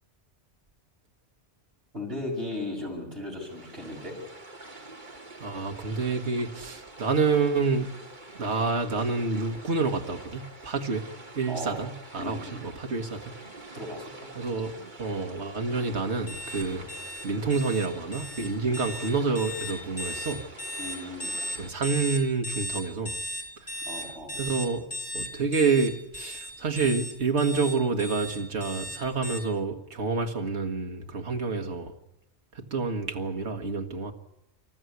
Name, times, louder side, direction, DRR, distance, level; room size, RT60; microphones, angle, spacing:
voice 1, 1.9-4.2 11.5-11.8 12.2-12.6 13.7-14.3 20.8-21.4 23.9-24.4, left 1 dB, 60° right, 0 dB, 6.4 m, -36 dB
sound 1, 3.3-21.7, right 2 dB, 45° right, 2.8 m, -46 dB
voice 2, 5.4-7.9 8.4-11.1 11.4-13.3 14.4-16.9 17.2-20.4 21.6-23.1 23.6-23.7 24.3-24.8 25.1-31.9 32.6-34.1, right 4 dB, 80° right, 3 dB, 1.9 m, -28 dB
sound 2, 16.3-29.4, left 1 dB, 55° left, 4.6 m, -36 dB
26.5 x 14.0 x 9.5 m, 0.85 s
omnidirectional pair, 1.1 m